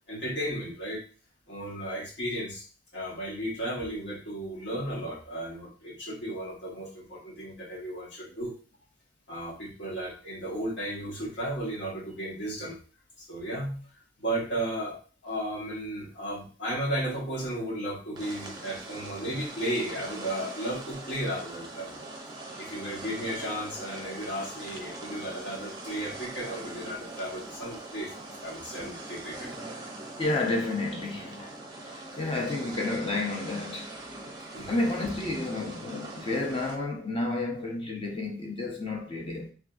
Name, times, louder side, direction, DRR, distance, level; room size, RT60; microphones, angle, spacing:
voice 1, 0.1-1.0 1.5-2.6 2.9-8.5 9.3-12.8 13.2-15.0 15.2-22.0 22.6-28.1 28.4-29.5 32.0-32.2 34.5-34.8, right 1 dB, 70° left, 1.3 m, -34 dB
sound 1, 18.2-36.8, right 2 dB, 25° right, 0.6 m, -42 dB
voice 2, 30.2-31.5 31.8-31.9 32.2-33.9 34.7-39.5, left 2 dB, 30° left, 0.7 m, -31 dB
3.3 x 2.7 x 2.3 m
head